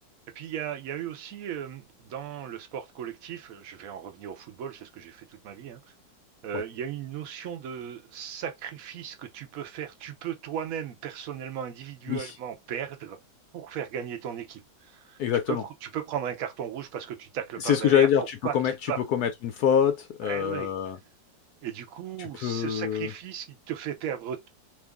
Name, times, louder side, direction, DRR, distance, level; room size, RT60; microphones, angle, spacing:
voice 1, 0.3-5.8 6.4-13.2 13.5-15.2 15.5-18.1 18.4-19.0 20.2-20.7 21.6-24.5, right 9 dB, 60° right, 1.0 m, -36 dB
voice 2, 15.2-15.6 17.6-18.7 19.1-21.0 22.2-23.1, left 8 dB, 70° left, 0.9 m, -25 dB
3.0 x 2.5 x 3.5 m
omnidirectional pair, 2.0 m